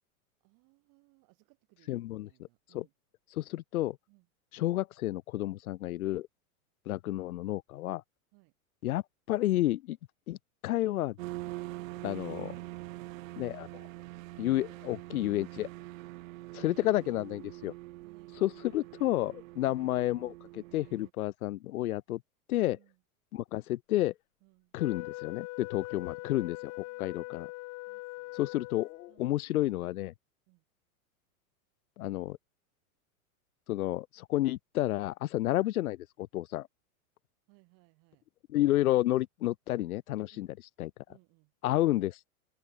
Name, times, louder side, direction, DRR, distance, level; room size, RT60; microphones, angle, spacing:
voice 1, 0.4-2.9 4.1-4.3 8.3-8.5 18.0-18.9 22.6-23.0 24.4-24.7 25.9-27.5 27.9-28.8 29.1-29.3 30.5-30.6 37.5-38.2 40.3-40.5 41.1-41.5, right 30 dB, 50° right, 6.4 m, -66 dB
voice 2, 1.9-2.3 2.7-2.8 3.3-4.0 4.5-6.3 6.9-8.0 8.8-10.0 10.3-10.4 10.6-11.2 12.0-12.6 13.3-13.7 14.4-15.7 16.5-17.7 18.4-22.2 22.5-22.8 23.3-24.1 24.7-27.5 28.3-30.1 32.0-32.4 33.7-36.7 38.5-40.5 40.8-40.9 41.6-42.3, left 15 dB, 75° left, 1.0 m, -31 dB
sound 1, 11.2-21.1, right 19 dB, 65° right, 0.9 m, -44 dB
Wind instrument woodwind instrument, 24.8-29.2, left 26 dB, 45° left, 1.6 m, -42 dB
hypercardioid pair, 120°, 43 cm